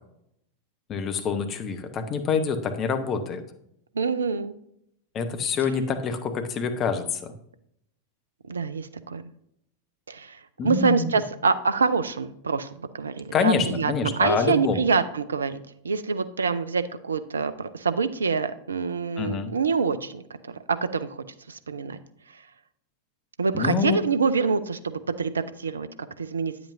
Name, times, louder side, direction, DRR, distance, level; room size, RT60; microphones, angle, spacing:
voice 1, 0.9-3.4 5.1-7.3 10.6-11.1 13.3-14.8 19.2-19.5 23.5-24.0, left 5 dB, 30° left, 8 dB, 0.9 m, -26 dB
voice 2, 3.9-4.5 8.5-9.2 10.1-15.6 15.8-22.0 22.3-22.4 23.4-25.9 26.2-26.5, right 5 dB, 70° right, 12 dB, 0.4 m, -26 dB
8.7 x 7.8 x 2.6 m, 0.75 s
figure-of-eight pair, 90°, 0 cm